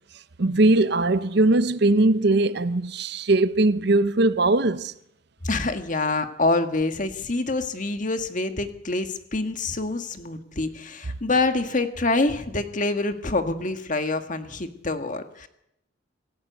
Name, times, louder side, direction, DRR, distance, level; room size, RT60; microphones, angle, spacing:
voice 1, 0.4-4.9, right 2 dB, 60° right, 0.8 m, -20 dB
voice 2, 5.4-15.5, left 2 dB, 45° left, 1.8 m, -26 dB
26.5 x 14.5 x 8.1 m
head